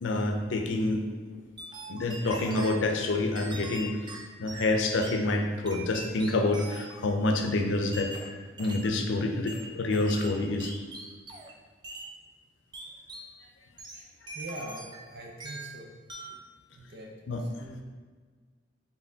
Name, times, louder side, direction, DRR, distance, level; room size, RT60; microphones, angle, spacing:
voice 1, 0.0-1.1 1.9-4.0 4.4-8.1 8.6-10.7 17.3-17.4, left 2 dB, 85° left, 4 dB, 0.5 m, -27 dB
sound 1, 1.6-2.8 3.3-5.2 5.6-7.0 7.9-9.0 9.5-11.6 11.8-12.1 12.7-13.3 13.8-15.1 15.4-15.8 16.1-16.4, right 2 dB, 25° right, 0.4 m, -43 dB
voice 2, 14.3-15.9 16.7-17.1 17.6-17.8, right 1 dB, 60° right, 0 dB, 0.7 m, -42 dB
4.2 x 3.7 x 2.8 m, 1.5 s
head